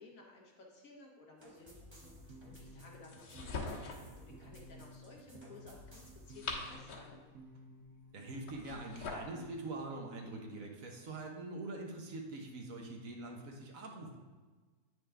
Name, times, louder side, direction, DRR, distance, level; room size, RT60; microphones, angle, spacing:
voice 1, 0.0-7.3, left 2 dB, 65° left, -1 dB, 1.6 m, -57 dB
sound 1, 1.4-6.4, equal, 20° right, 0.9 m, -57 dB
sound 2, 2.0-10.6, equal, 85° right, 1.4 m, -56 dB
sound 3, 3.1-4.1 6.1-7.2 8.5-9.4, left 3 dB, 85° left, 1.8 m, -43 dB
voice 2, 8.1-14.2, right 2 dB, 65° right, 1 dB, 1.4 m, -44 dB
9.2 x 4.8 x 3.4 m, 1.3 s
omnidirectional pair, 1.6 m